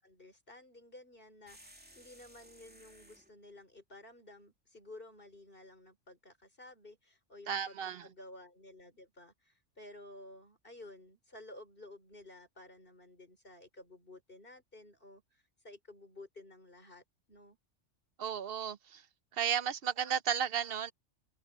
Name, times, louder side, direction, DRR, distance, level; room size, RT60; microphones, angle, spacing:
voice 1, 0.0-17.6, left 2 dB, 45° left, 5.6 m, -54 dB
sound 1, 1.5-3.3, equal, 10° right, 2.9 m, -58 dB
voice 2, 7.5-8.1 18.2-19.0 19.3-20.9, right 8 dB, 60° right, 0.9 m, -34 dB
omnidirectional pair, 1.2 m